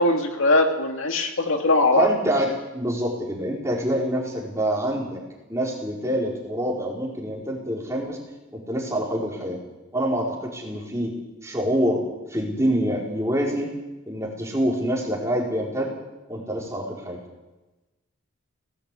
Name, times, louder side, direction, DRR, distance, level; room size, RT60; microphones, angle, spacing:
voice 1, 0.0-2.1, left 2 dB, 70° left, 4 dB, 2.2 m, -20 dB
voice 2, 2.0-5.2 5.5-8.2 8.5-9.6 9.9-11.1 11.4-12.0 12.3-13.7 14.1-15.9 16.3-17.2, right 1 dB, 15° right, -3 dB, 4.5 m, -26 dB
18.5 x 16.0 x 8.5 m, 1.1 s
head